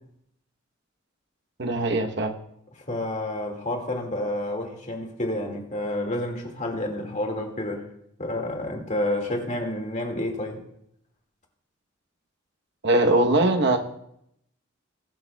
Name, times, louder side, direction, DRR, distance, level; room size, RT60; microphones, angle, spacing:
voice 1, 1.6-2.4 12.8-13.8, right 2 dB, 60° right, 4 dB, 1.0 m, -21 dB
voice 2, 2.9-7.8 8.2-10.6, left 1 dB, 35° left, 2 dB, 2.0 m, -29 dB
21.0 x 11.0 x 2.3 m, 0.76 s
head